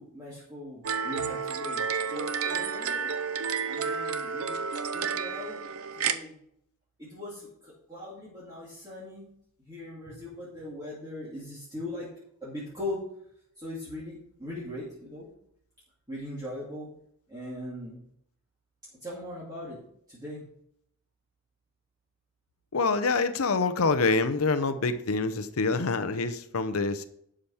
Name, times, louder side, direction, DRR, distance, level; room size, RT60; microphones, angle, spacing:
voice 1, 0.0-3.1 3.6-4.7 4.9-5.6 5.9-6.4 7.0-9.3 9.6-12.1 12.4-13.0 13.6-15.3 16.1-16.9 17.3-18.0 19.0-19.8 20.1-20.4, left 1 dB, 15° right, -8 dB, 2.5 m, -40 dB
sound 1, 0.8-6.2, right 6 dB, 80° right, 0.7 m, -31 dB
voice 2, 22.7-27.1, left 4 dB, 80° left, 11 dB, 0.7 m, -26 dB
11.5 x 5.1 x 5.6 m, 0.72 s
head